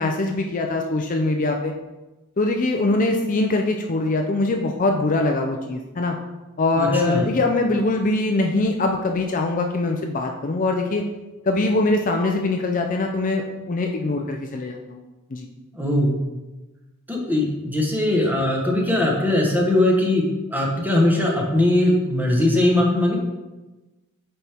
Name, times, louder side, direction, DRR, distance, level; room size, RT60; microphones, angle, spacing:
voice 1, 0.0-1.7 2.4-6.2 6.6-11.0 11.5-15.0 15.3-15.5, left 2 dB, 40° left, 3 dB, 0.5 m, -22 dB
voice 2, 6.7-7.2 15.7-16.2 17.1-23.2, left 1 dB, 10° right, -1 dB, 1.1 m, -20 dB
8.1 x 4.4 x 3.5 m, 1.1 s
head